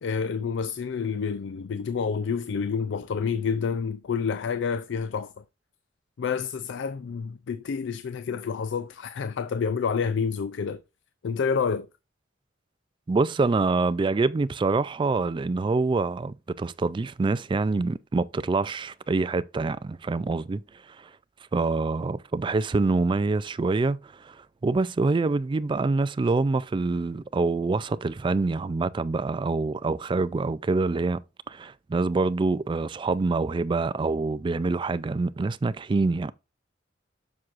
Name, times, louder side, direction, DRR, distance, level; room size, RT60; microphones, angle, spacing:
voice 1, 0.0-5.3 6.2-10.8 11.2-11.9, left 6 dB, 70° left, 0.4 m, -28 dB
voice 2, 13.1-20.6 21.0-21.1 21.5-31.2 31.5-36.3, right 3 dB, 25° right, 0.3 m, -26 dB
7.4 x 6.1 x 2.5 m
head